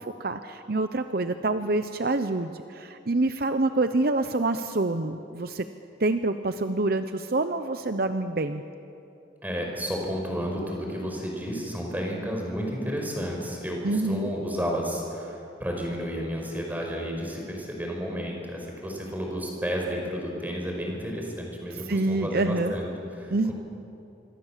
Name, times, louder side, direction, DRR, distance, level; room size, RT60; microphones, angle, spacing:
voice 1, 0.0-5.6 6.0-8.6 13.8-14.3 21.9-22.7 23.3-23.5, right 2 dB, 55° right, 9 dB, 0.8 m, -26 dB
voice 2, 9.4-23.5, equal, 10° right, 0 dB, 5.4 m, -32 dB
26.0 x 25.0 x 7.4 m, 2.8 s
head